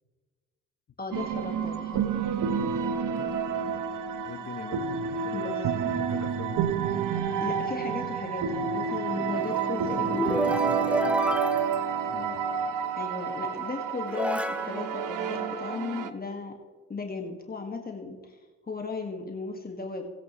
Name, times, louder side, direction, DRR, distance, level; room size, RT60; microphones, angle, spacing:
voice 1, 1.0-2.0 5.3-5.6 7.4-10.8 13.0-16.5 16.9-18.4 18.6-20.1, left 4 dB, 25° left, 2 dB, 1.8 m, -36 dB
sound 1, 1.1-16.1, right 7 dB, 60° right, 1.1 m, -29 dB
voice 2, 3.2-3.9 4.2-6.7 12.0-12.4, left 7 dB, 45° left, 9 dB, 1.3 m, -43 dB
sound 2, 9.0-12.7 13.5-13.6 14.1-16.0, right 1 dB, 5° right, 0.9 m, -31 dB
20.0 x 8.1 x 3.1 m, 1.3 s
supercardioid pair, 70°, 35 cm